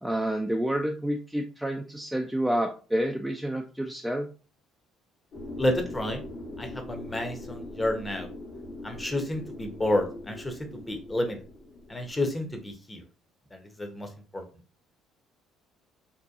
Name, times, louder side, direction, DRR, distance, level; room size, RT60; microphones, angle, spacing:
voice 1, 0.0-4.3, right 1 dB, 5° right, 3 dB, 0.3 m, -29 dB
sound 1, 5.3-12.7, left 1 dB, 65° left, 1.0 m, -42 dB
voice 2, 5.6-6.2 6.6-8.3 8.8-11.4 11.9-13.0 13.5-14.4, left 1 dB, 15° left, 5 dB, 0.7 m, -30 dB
2.7 x 2.2 x 2.3 m, 0.36 s
hypercardioid pair, 60°, 0 cm